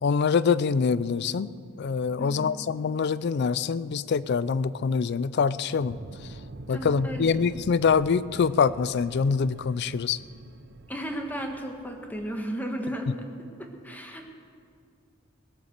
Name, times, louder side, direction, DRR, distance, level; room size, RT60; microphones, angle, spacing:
voice 1, 0.0-1.5 1.8-6.0 6.7-10.2, left 5 dB, 55° left, 17 dB, 0.4 m, -25 dB
voice 2, 2.2-2.6 6.7-7.3 10.9-13.2 13.8-14.3, right 1 dB, 10° left, 3 dB, 1.4 m, -34 dB
sound 1, 5.8-12.5, right 2 dB, 55° right, 0.6 m, -45 dB
20.0 x 8.4 x 6.6 m, 2.3 s
head